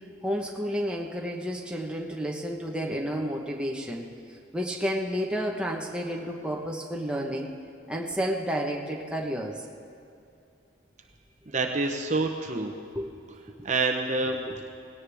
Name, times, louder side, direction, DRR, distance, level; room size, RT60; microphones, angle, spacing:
voice 1, 0.2-4.0 4.5-7.5 7.9-9.6 12.9-13.1 13.6-13.7 14.3-14.7, equal, 5° right, -1 dB, 1.1 m, -31 dB
voice 2, 11.5-12.7 13.6-14.4, right 3 dB, 40° right, 4 dB, 0.8 m, -27 dB
18.5 x 17.0 x 3.5 m, 2.6 s
head